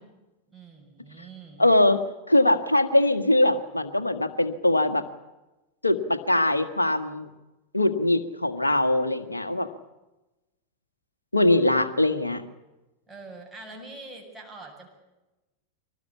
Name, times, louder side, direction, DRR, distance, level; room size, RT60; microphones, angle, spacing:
voice 1, 0.5-1.7 13.1-14.9, right 3 dB, 10° right, 1 dB, 7.8 m, -44 dB
voice 2, 1.6-5.0 5.8-7.3 7.7-9.7 11.3-12.4, left 1 dB, 85° left, 9 dB, 1.7 m, -22 dB
25.0 x 19.0 x 8.5 m, 1.0 s
figure-of-eight pair, 90°, 0 cm